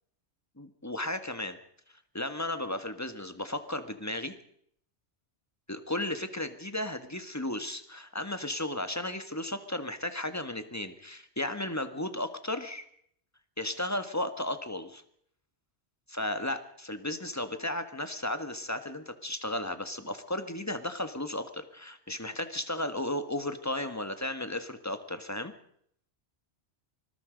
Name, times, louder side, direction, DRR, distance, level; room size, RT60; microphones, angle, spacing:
voice 1, 0.6-1.6 2.1-4.3 5.7-12.8 13.6-15.0 16.1-25.5, left 1 dB, 15° left, 9 dB, 1.6 m, -34 dB
25.5 x 21.0 x 5.2 m, 0.67 s
omnidirectional pair, 1.1 m